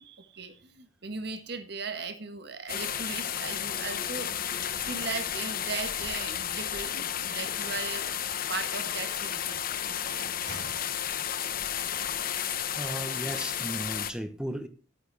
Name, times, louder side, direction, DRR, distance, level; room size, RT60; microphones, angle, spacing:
voice 1, 0.0-4.3 4.9-8.2 8.5-10.8, right 4 dB, 60° right, 1.5 m, -38 dB
sound 1, 2.7-14.1, left 9 dB, 50° left, 0.8 m, -32 dB
voice 2, 12.8-14.7, right 1 dB, 5° right, 1.1 m, -35 dB
11.0 x 10.0 x 4.1 m
head